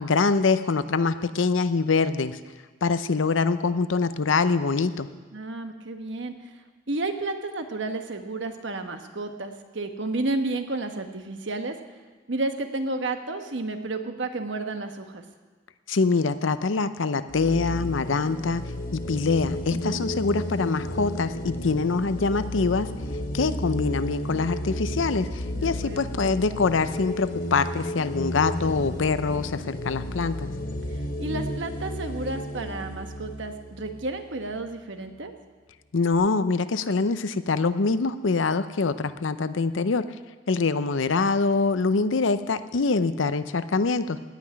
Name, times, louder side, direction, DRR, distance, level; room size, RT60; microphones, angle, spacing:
voice 1, 0.0-2.4 2.8-5.1 15.9-18.6 18.9-22.9 23.3-30.5 35.9-40.1 40.5-44.2, left 4 dB, 85° left, 12 dB, 0.6 m, -24 dB
voice 2, 5.3-6.5 6.9-11.8 12.3-15.2 19.7-20.1 25.5-26.1 30.9-35.3, right 2 dB, 70° right, 6 dB, 1.2 m, -31 dB
sound 1, 17.3-34.7, left 1 dB, 45° left, 1.1 m, -33 dB
17.0 x 6.0 x 10.0 m, 1.3 s
head